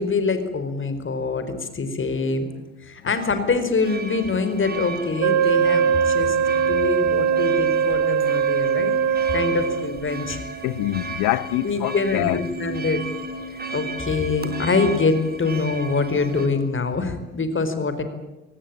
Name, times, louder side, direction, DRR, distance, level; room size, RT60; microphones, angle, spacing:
voice 1, 0.0-2.5 2.8-8.9 9.3-10.4 11.6-13.0 13.7-18.0, left 4 dB, 35° left, 4.5 m, -24 dB
sound 1, 3.8-16.5, right 3 dB, 25° right, 4.0 m, -34 dB
Wind instrument woodwind instrument, 5.2-9.9, right 7 dB, 45° right, 1.4 m, -21 dB
voice 2, 10.6-12.5, left 18 dB, 65° left, 0.9 m, -25 dB
24.0 x 18.5 x 8.9 m
hypercardioid pair, 50°, 36 cm